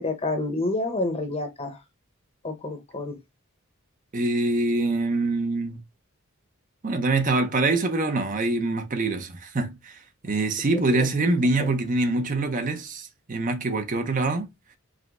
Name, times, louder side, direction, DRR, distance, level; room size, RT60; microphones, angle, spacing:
voice 1, 0.0-1.8 2.4-3.2 10.7-11.0 11.6-11.7, left 2 dB, 30° left, 0.9 m, -29 dB
voice 2, 4.1-5.8 6.8-10.0 10.2-14.5, right 2 dB, 40° right, 0.6 m, -24 dB
4.9 x 2.2 x 3.5 m
head